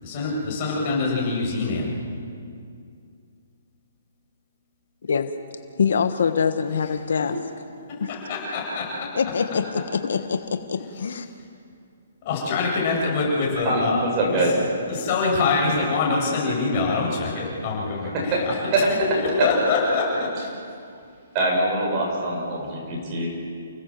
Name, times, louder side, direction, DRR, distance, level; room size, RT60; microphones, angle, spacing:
voice 1, 0.0-1.9 7.2-7.3 7.9-9.1 9.5-9.6 12.2-14.0 14.3-14.5 14.9-18.6 18.9-20.5, left 3 dB, 30° left, -3 dB, 7.9 m, -25 dB
voice 2, 5.0-5.5 5.8-7.4 8.0-8.1 9.1-11.3, left 6 dB, 70° left, 8 dB, 1.3 m, -24 dB
voice 3, 13.7-14.5 18.3-18.4 18.7-18.9 21.3-23.5, right 2 dB, 25° right, -2 dB, 7.0 m, -23 dB
29.5 x 18.0 x 7.7 m, 2.4 s
hypercardioid pair, 165°, 0 cm